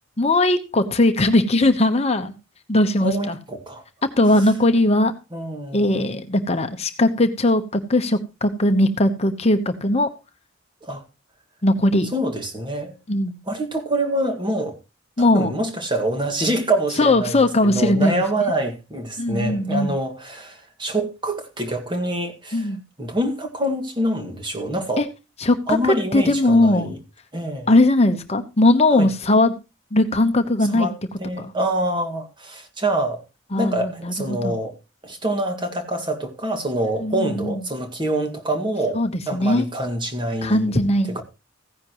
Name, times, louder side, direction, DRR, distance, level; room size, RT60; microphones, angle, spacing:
voice 1, 0.2-2.3 2.7-3.4 4.2-5.1 5.7-10.1 11.6-12.1 13.1-13.3 15.2-15.5 17.0-18.2 19.2-20.0 22.5-22.8 25.0-25.1 25.4-26.9 27.7-29.5 29.9-30.9 31.4-31.5 33.5-34.6 37.0-37.6 38.9-39.6 40.4-41.2, left 1 dB, 35° left, 1.0 m, -19 dB
voice 2, 3.0-3.8 5.3-6.1 10.8-11.0 12.1-13.0 13.5-14.8 15.2-17.4 17.6-22.7 23.0-25.0 25.7-27.0 27.3-27.7 28.9-29.1 30.7-33.2 33.6-34.8 35.0-40.7 41.1-41.2, right 1 dB, 25° right, 2.0 m, -26 dB
15.5 x 10.5 x 3.0 m
head